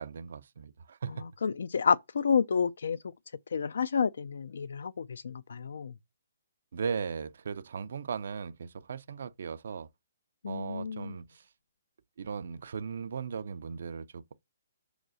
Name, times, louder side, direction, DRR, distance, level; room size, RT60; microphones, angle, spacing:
voice 1, 0.0-1.2 6.7-9.9 10.5-11.4 12.2-14.3, right 6 dB, 50° right, 0.5 m, -37 dB
voice 2, 1.1-3.1 3.5-6.0 10.4-11.2, left 6 dB, 65° left, 0.4 m, -30 dB
5.5 x 5.0 x 6.2 m
hypercardioid pair, 175°, 0 cm